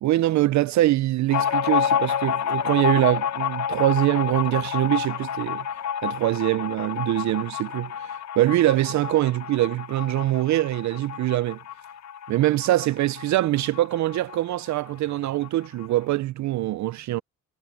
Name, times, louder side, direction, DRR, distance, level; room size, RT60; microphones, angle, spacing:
voice 1, 0.0-5.7 6.0-11.6 12.3-17.2, right 15 dB, 70° right, 0.5 m, -23 dB
sound 1, 1.3-14.4 14.7-14.8 15.1-15.9, left 9 dB, 65° left, 0.9 m, -29 dB
cardioid pair, 90°, 30 cm